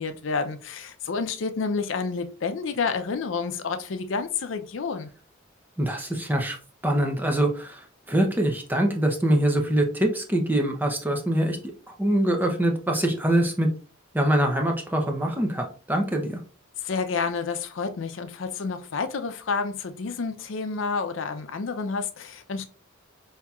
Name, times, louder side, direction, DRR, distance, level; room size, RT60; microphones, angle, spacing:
voice 1, 0.0-5.1 16.8-22.7, left 4 dB, 65° left, 0.5 m, -29 dB
voice 2, 5.8-6.6 6.8-11.6 11.9-13.7 14.1-16.4, right 1 dB, 10° right, 0.6 m, -24 dB
5.5 x 2.7 x 2.3 m
head